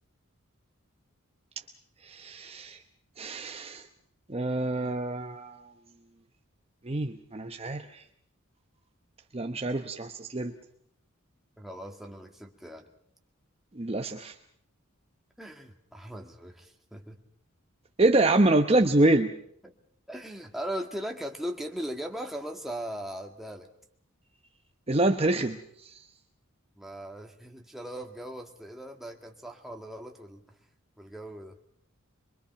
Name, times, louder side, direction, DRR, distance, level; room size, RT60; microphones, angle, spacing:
voice 1, 2.0-2.8 3.2-3.9 4.3-5.7 6.8-8.0 9.3-10.5 13.7-14.3 18.0-19.3 24.9-26.1, right 2 dB, 30° right, 5 dB, 0.9 m, -26 dB
voice 2, 11.6-12.8 15.4-17.2 19.6-19.7 20.1-23.7 26.8-30.4 31.0-31.6, right 1 dB, ahead, 2 dB, 1.9 m, -39 dB
24.5 x 23.0 x 5.8 m, 0.68 s
head